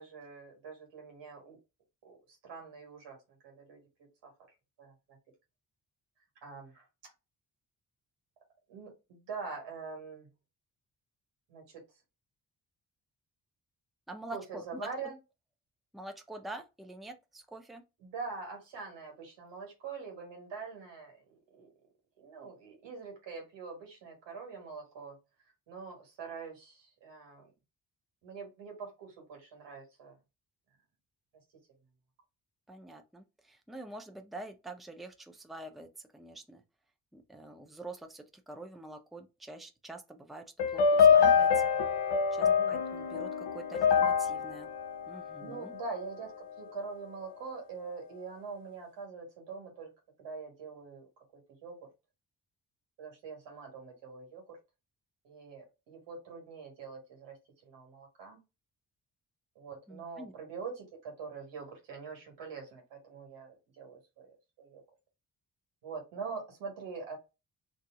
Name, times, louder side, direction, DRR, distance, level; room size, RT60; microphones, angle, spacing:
voice 1, 0.0-1.6 2.0-3.2 3.4-3.8 4.2-4.3 4.8-4.9 6.4-6.9 8.7-10.3 11.5-11.8 14.3-15.2 18.0-21.7 22.2-25.2 25.7-27.5 28.2-30.2 42.4-42.8 45.4-49.9 50.2-51.9 53.0-54.6 55.2-57.4 57.6-58.4 59.6-64.8 65.8-67.2, right 5 dB, 85° right, 1.6 m, -44 dB
voice 2, 14.1-15.1 15.9-17.8 32.7-35.9 36.1-36.6 37.1-40.4 40.7-41.6 42.3-44.7 45.1-45.7 59.9-60.3, right 2 dB, ahead, 0.7 m, -46 dB
sound 1, 40.6-45.9, left 6 dB, 75° left, 0.7 m, -26 dB
2.7 x 2.6 x 3.6 m
supercardioid pair, 50°, 43 cm